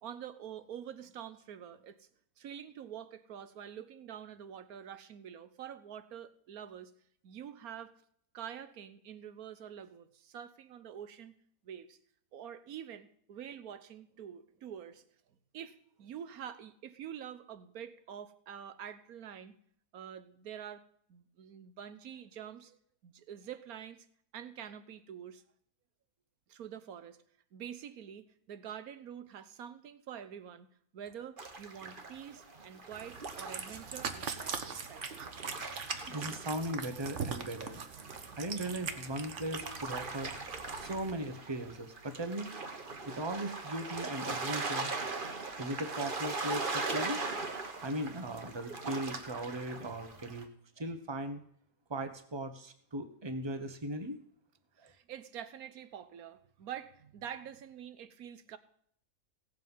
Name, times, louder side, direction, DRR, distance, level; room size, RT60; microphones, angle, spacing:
voice 1, 0.0-2.1 2.4-6.9 7.2-7.9 8.3-11.3 11.6-12.0 12.3-15.0 15.5-19.5 19.9-20.8 21.1-24.1 24.3-25.4 26.5-27.2 27.5-30.7 30.9-35.3 54.8-58.6, right 9 dB, 85° right, 13 dB, 1.4 m, -46 dB
sound 1, 31.4-37.1 37.4-50.4, right 3 dB, 35° right, 1.4 m, -40 dB
Cat, 32.9-41.1, right 6 dB, 55° right, 1.4 m, -42 dB
voice 2, 36.1-37.8 38.3-40.3 40.7-42.5 43.1-44.9 45.6-47.3 47.8-50.5 50.8-51.4 51.9-54.2 54.8-54.9, right 1 dB, 20° right, 8 dB, 1.1 m, -38 dB
17.0 x 7.6 x 5.5 m, 0.64 s
omnidirectional pair, 1.5 m